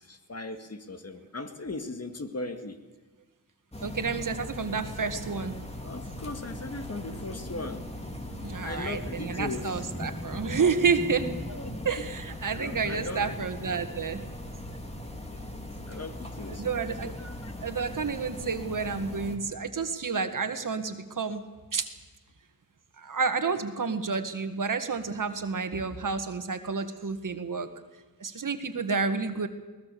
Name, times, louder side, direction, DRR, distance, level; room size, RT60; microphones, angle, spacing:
voice 1, 0.0-2.8 5.8-7.9 8.6-9.9 11.5-12.1 12.5-13.3 15.3-15.5 15.9-16.7 17.0-17.5, left 2 dB, 40° left, 7 dB, 2.1 m, -38 dB
sound 1, 3.7-19.4, left 1 dB, 15° left, 2.9 m, -39 dB
voice 2, 3.8-5.6 8.4-11.3 11.9-14.2 16.5-17.1 17.6-21.4 21.7-21.9 23.0-27.7 28.2-29.5, right 5 dB, 55° right, 8 dB, 2.0 m, -30 dB
22.0 x 19.0 x 7.0 m, 1.3 s
cardioid pair, 75°, 37 cm